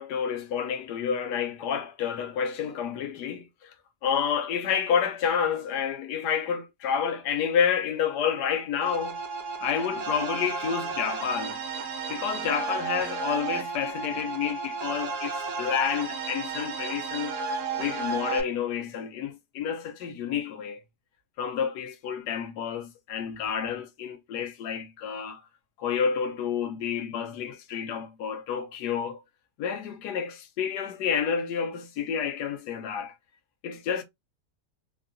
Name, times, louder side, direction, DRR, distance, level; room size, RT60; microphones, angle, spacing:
voice 1, 0.0-3.7 4.0-9.2 9.6-11.6 12.1-17.3 17.8-20.8 21.4-25.4 25.8-29.2 29.6-33.1 33.6-34.0, left 7 dB, 85° left, 1.2 m, -29 dB
sound 1, 8.8-18.4, right 4 dB, 75° right, 1.3 m, -33 dB
3.6 x 2.3 x 2.5 m
omnidirectional pair, 1.7 m